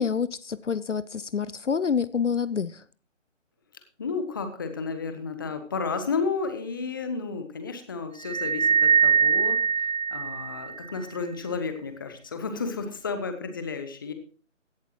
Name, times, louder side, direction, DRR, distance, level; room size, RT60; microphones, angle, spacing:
voice 1, 0.0-2.8, left 6 dB, 70° left, 0.7 m, -27 dB
voice 2, 4.0-9.6 10.1-14.1, left 4 dB, 15° left, 0.9 m, -32 dB
sound 1, 8.2-10.9, right 6 dB, 90° right, 0.8 m, -23 dB
16.5 x 11.5 x 3.0 m
figure-of-eight pair, 150°, 38 cm